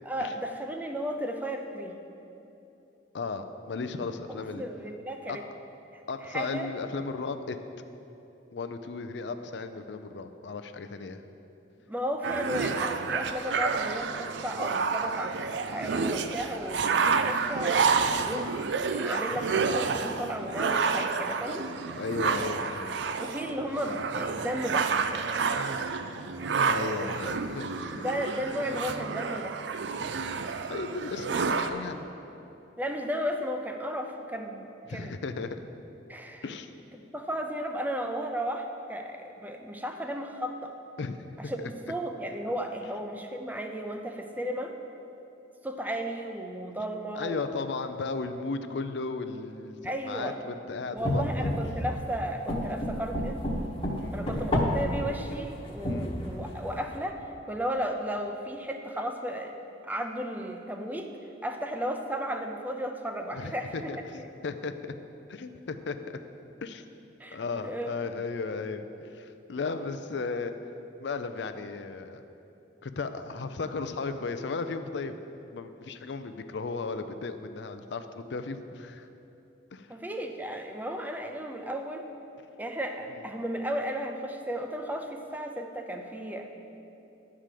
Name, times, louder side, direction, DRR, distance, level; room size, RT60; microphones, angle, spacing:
voice 1, 0.0-2.0 4.3-5.4 6.2-6.7 11.9-17.9 18.2-18.6 18.9-21.7 23.2-24.9 27.9-29.6 32.8-35.2 36.1-36.4 37.0-40.7 41.4-44.7 45.6-47.4 49.8-50.4 50.9-53.4 54.1-57.2 57.5-59.6 59.8-61.1 61.4-63.9 64.2-64.3 67.2-67.4 67.6-67.9 79.9-82.0 82.6-86.5, equal, 10° right, 4 dB, 0.5 m, -34 dB
voice 2, 3.1-4.6 5.3-5.4 6.1-7.6 8.5-11.2 13.5-13.6 22.0-23.0 26.7-28.1 30.6-32.1 34.9-35.6 36.4-36.7 41.0-41.7 47.1-51.5 54.0-54.2 55.8-56.1 63.3-64.9 65.3-66.0 66.6-66.8 67.3-70.5 71.0-72.2 72.8-75.2 75.5-79.1 79.7-79.9 83.1-83.2, left 4 dB, 65° left, 9 dB, 0.5 m, -35 dB
sound 1, 12.2-31.7, right 5 dB, 65° right, 0.4 m, -29 dB
sound 2, 51.0-52.0 52.5-54.9 55.3-56.8, left 1 dB, 30° left, 1.1 m, -30 dB
10.5 x 4.9 x 7.5 m, 2.9 s
head